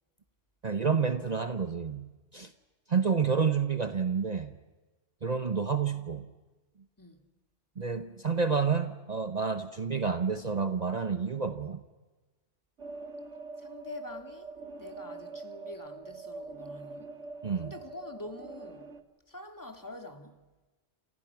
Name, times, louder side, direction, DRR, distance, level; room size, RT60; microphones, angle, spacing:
voice 1, 0.6-2.5 2.9-4.6 5.2-6.3 7.8-11.8 17.4-17.7, right 5 dB, 40° right, 1.0 m, -29 dB
sound 1, 12.8-19.0, right 3 dB, 85° right, 1.6 m, -44 dB
voice 2, 13.6-14.5 14.8-17.2 17.6-18.9 19.3-20.4, left 2 dB, 15° left, 2.4 m, -45 dB
29.5 x 28.5 x 6.0 m
omnidirectional pair, 1.2 m